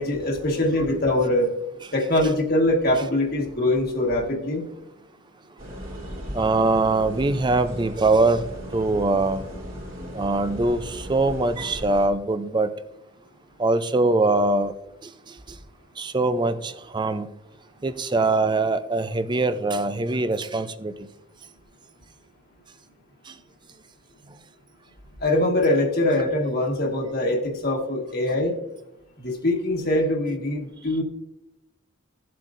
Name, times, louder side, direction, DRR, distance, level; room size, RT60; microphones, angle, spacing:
voice 1, 0.0-1.5 1.9-4.6 25.2-28.5 29.2-31.0, left 1 dB, 50° left, 0 dB, 1.6 m, -23 dB
sound 1, 5.6-12.1, equal, 40° right, 3.0 m, -37 dB
voice 2, 6.3-9.4 10.1-12.7 13.6-14.7 15.0-15.4 16.0-17.3 17.8-21.1 23.3-23.4, right 2 dB, 20° right, 12 dB, 0.5 m, -23 dB
16.0 x 7.7 x 2.6 m, 0.89 s
head